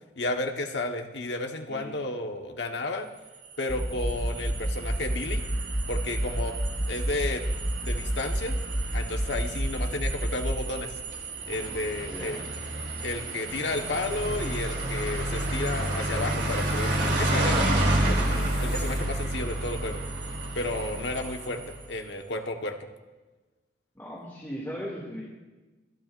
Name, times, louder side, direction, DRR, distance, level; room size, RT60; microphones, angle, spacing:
voice 1, 0.1-3.1 3.6-5.4 5.9-6.5 6.9-7.4 7.8-8.6 8.9-10.9 11.5-12.6 13.0-18.2 18.6-20.0 20.5-22.8, left 2 dB, 90° left, 3 dB, 1.4 m, -32 dB
voice 2, 1.7-2.0 12.1-12.4 23.9-25.2, equal, 15° left, -5 dB, 2.5 m, -38 dB
sound 1, 3.4-21.9, right 1 dB, 90° right, 3.2 m, -31 dB
sound 2, 3.7-10.6, equal, 30° right, 1.9 m, -30 dB
sound 3, 13.5-19.0, left 2 dB, 60° left, 6.0 m, -42 dB
27.5 x 12.5 x 2.6 m, 1.2 s
head